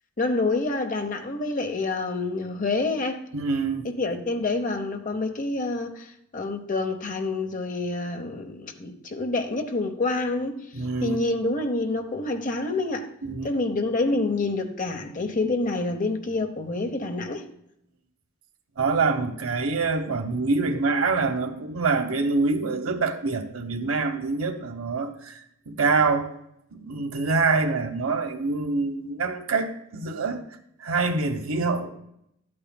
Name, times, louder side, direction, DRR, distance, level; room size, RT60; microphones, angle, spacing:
voice 1, 0.2-3.2 3.8-10.5 11.0-13.1 13.4-17.5, left 2 dB, 40° left, 0.8 m, -27 dB
voice 2, 3.3-3.9 10.7-11.2 13.2-13.5 18.8-26.3 26.7-30.4 30.8-31.9, right 4 dB, 85° right, 1.0 m, -25 dB
12.5 x 8.6 x 2.2 m
head